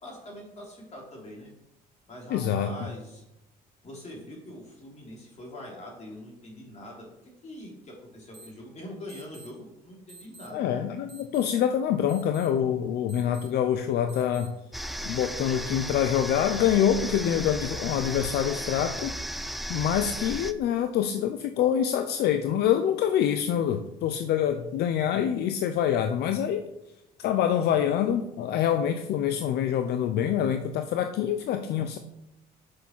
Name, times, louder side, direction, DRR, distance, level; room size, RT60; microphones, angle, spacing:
voice 1, 0.0-1.5 2.1-3.2 3.8-7.1 7.4-10.7, left 1 dB, 40° left, -2 dB, 3.4 m, -43 dB
voice 2, 2.3-2.9 10.5-14.5 15.0-19.1 19.7-26.7 27.2-32.0, left 9 dB, 75° left, 8 dB, 0.6 m, -26 dB
sound 1, 8.3-8.5 9.1-9.5 10.1-10.5 11.1-11.5 12.1-12.5 13.1-13.5 14.1-14.5, right 3 dB, 30° right, 3.6 m, -48 dB
sound 2, 14.7-20.5, equal, ahead, 0.5 m, -35 dB
6.6 x 6.3 x 5.5 m, 0.85 s
cardioid pair, 110°, 17 cm